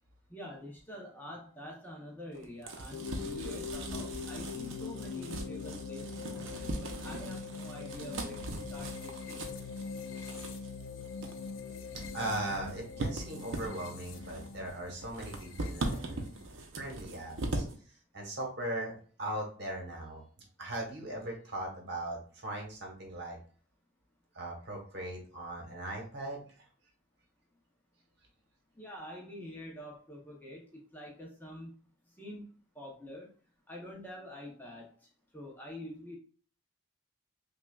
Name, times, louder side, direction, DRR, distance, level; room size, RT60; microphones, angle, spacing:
voice 1, 0.3-9.4 28.8-31.7 32.2-33.3 33.7-34.9 35.3-36.2, left 1 dB, 10° left, -2 dB, 0.6 m, -46 dB
sound 1, 2.3-17.7, right 2 dB, 70° right, 0.7 m, -40 dB
sound 2, 2.9-16.4, left 5 dB, 70° left, 0.4 m, -43 dB
voice 2, 12.1-16.2 16.8-18.9 19.2-20.2 20.6-23.4 24.3-26.6, right 1 dB, 55° right, 0 dB, 1.2 m, -39 dB
5.5 x 2.4 x 2.3 m, 0.42 s
head